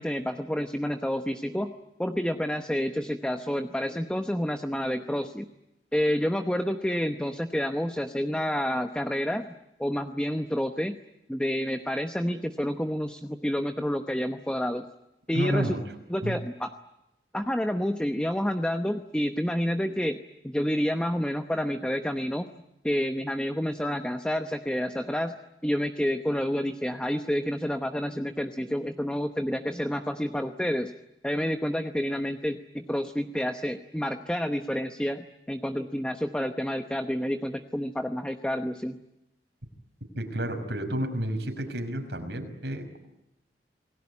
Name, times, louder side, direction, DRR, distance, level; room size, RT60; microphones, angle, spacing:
voice 1, 0.0-1.7 2.0-5.5 5.9-9.5 9.8-11.0 11.3-14.9 15.3-15.8 16.1-16.7 17.3-20.2 20.4-22.5 22.8-25.3 25.6-30.9 31.2-39.0, equal, 5° left, 6 dB, 0.9 m, -29 dB
voice 2, 15.3-15.8 16.2-16.4 40.2-43.0, right 1 dB, 85° right, 4 dB, 5.8 m, -30 dB
28.5 x 20.0 x 9.8 m, 0.89 s
head